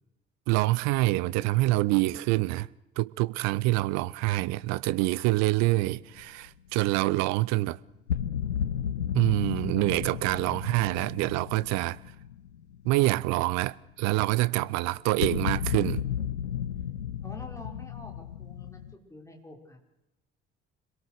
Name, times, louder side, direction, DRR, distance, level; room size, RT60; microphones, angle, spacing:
voice 1, 0.5-2.7 3.0-7.8 9.1-12.0 12.8-16.0, right 19 dB, 55° right, 0.7 m, -26 dB
sound 1, 5.6-6.5 8.1-13.2 13.4-13.7 15.2-18.9, left 9 dB, 85° left, 0.7 m, -33 dB
voice 2, 17.2-18.8 19.1-19.8, left 1 dB, 10° left, 5.3 m, -47 dB
26.0 x 17.5 x 6.7 m
figure-of-eight pair, 50°, 32 cm